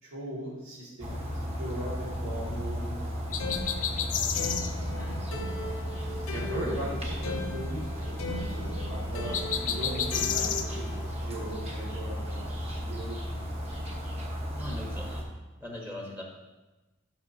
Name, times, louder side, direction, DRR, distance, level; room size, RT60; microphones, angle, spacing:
voice 1, 0.0-3.4 3.7-4.2 6.3-13.5, right 1 dB, 75° right, -10 dB, 2.0 m, -39 dB
sound 1, 1.0-15.2, equal, 30° right, 1.2 m, -35 dB
sound 2, 3.3-4.7 9.3-10.7, left 8 dB, 40° left, 0.4 m, -30 dB
sound 3, 3.4-11.1, left 2 dB, 90° left, 0.8 m, -39 dB
voice 2, 4.8-5.2 9.6-9.8 14.6-15.1 15.6-16.2, left 1 dB, 10° right, -2 dB, 1.1 m, -40 dB
11.5 x 6.0 x 2.7 m, 1.1 s
head